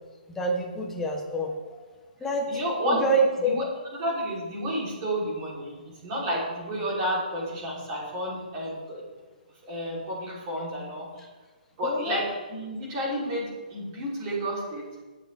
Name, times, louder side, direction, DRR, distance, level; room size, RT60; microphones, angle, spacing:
voice 1, 0.3-1.5 2.2-2.4 2.9-3.6 11.8-12.2, right 2 dB, 5° left, 1 dB, 0.9 m, -26 dB
voice 2, 2.5-3.0 3.4-3.6 4.0-9.0 9.6-11.2 11.8-14.8, equal, 20° right, -5 dB, 3.3 m, -31 dB
18.0 x 7.4 x 3.4 m, 1.3 s
hypercardioid pair, 175°, 5 cm